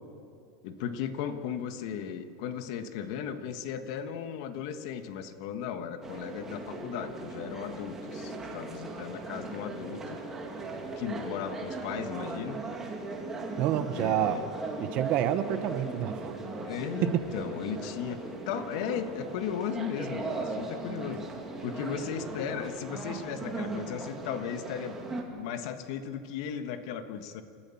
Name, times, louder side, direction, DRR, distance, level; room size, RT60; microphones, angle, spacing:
voice 1, 0.6-10.2 11.0-12.6 14.0-14.5 16.6-21.3 21.6-25.0 25.3-27.4, left 8 dB, 50° left, 9 dB, 1.4 m, -36 dB
sound 1, 6.0-25.2, right 3 dB, 10° right, 2.0 m, -38 dB
voice 2, 13.6-14.4 14.8-16.3 17.0-17.2, right 11 dB, 35° right, 11 dB, 0.9 m, -28 dB
29.0 x 14.0 x 7.2 m, 2.4 s
supercardioid pair, 170°, 3 cm